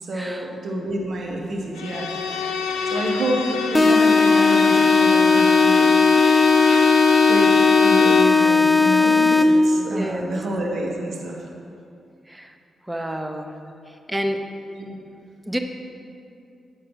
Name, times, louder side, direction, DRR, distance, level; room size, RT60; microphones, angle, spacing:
voice 1, 0.0-5.9 7.3-11.4 14.8-14.9, right 1 dB, 60° right, 0 dB, 1.0 m, -29 dB
Bowed string instrument, 1.8-8.4, left 5 dB, 85° left, 0.5 m, -23 dB
sound 1, 3.7-9.7, left 3 dB, 25° left, 0.6 m, -16 dB
voice 2, 9.9-10.3 12.3-12.4 12.9-13.5 14.1-14.4 15.5-15.6, equal, 15° right, 5 dB, 0.9 m, -28 dB
8.9 x 4.6 x 6.1 m, 2.5 s
supercardioid pair, 45°, 0 cm